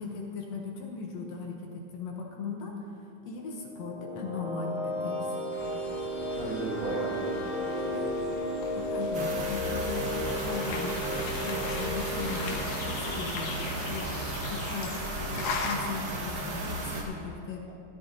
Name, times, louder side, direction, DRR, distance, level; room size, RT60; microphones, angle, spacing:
voice 1, 0.0-2.9 3.2-5.3 8.7-10.0 10.4-17.6, left 5 dB, 65° left, 0 dB, 2.1 m, -38 dB
sound 1, 3.6-14.4, equal, 45° left, 2.4 m, -34 dB
sound 2, 5.5-15.8, left 4 dB, 85° left, 2.7 m, -39 dB
voice 2, 6.3-8.3, right 2 dB, 70° right, -4 dB, 3.8 m, -36 dB
sound 3, 9.1-17.0, right 2 dB, 50° right, 1.4 m, -35 dB
14.0 x 12.0 x 4.1 m, 2.6 s
omnidirectional pair, 3.7 m